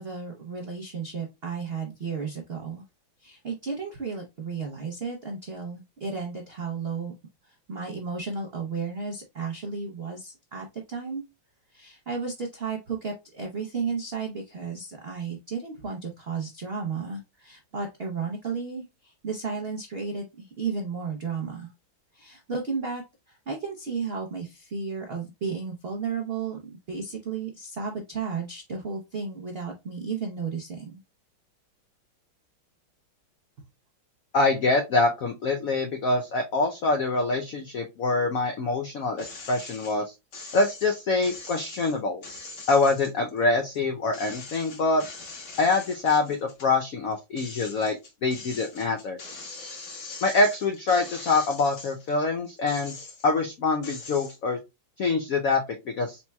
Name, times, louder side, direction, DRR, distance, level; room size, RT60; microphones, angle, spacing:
voice 1, 0.0-2.8 3.2-7.1 7.4-11.2 11.7-21.7 22.1-23.0 23.3-31.0, right 5 dB, 80° right, 0 dB, 0.5 m, -33 dB
voice 2, 34.3-40.1 40.5-42.2 42.7-45.0 45.6-49.2 50.2-52.9 53.2-54.6 55.0-56.2, left 3 dB, 85° left, 4 dB, 0.7 m, -25 dB
sound 1, 39.2-39.9 40.3-43.8 44.1-46.7 47.1-52.1 52.6-53.4 53.8-54.4, left 3 dB, 60° left, 1.8 m, -42 dB
4.4 x 4.2 x 2.2 m, 0.24 s
omnidirectional pair, 2.2 m